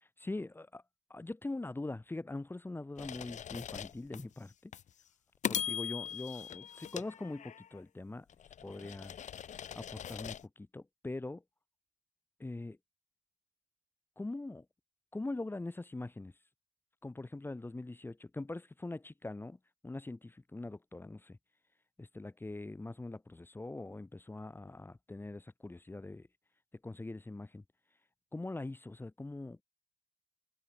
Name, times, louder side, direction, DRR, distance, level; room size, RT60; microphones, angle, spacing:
voice 1, 0.2-0.8 1.1-4.7 5.5-8.3 8.6-9.2 9.8-11.4 12.4-12.8 14.2-14.7 15.1-16.3 17.0-19.6 19.8-21.4 22.0-26.3 26.8-27.6 28.3-29.6, left 2 dB, 10° left, 2.3 m, -42 dB
sound 1, 3.0-4.2 4.7-4.9 5.4-7.8 8.3-10.4, left 9 dB, 45° left, 1.3 m, -40 dB
open air
cardioid pair, 110°, 17 cm